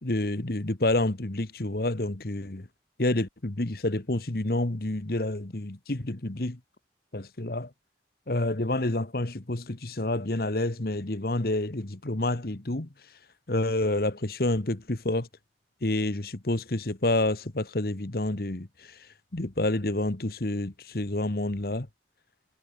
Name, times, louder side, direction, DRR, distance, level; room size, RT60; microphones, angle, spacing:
voice 1, 0.0-2.7 3.0-6.6 7.1-7.7 8.3-12.9 13.5-15.3 15.8-18.7 19.3-21.9, left 2 dB, 55° left, 1.4 m, -28 dB
head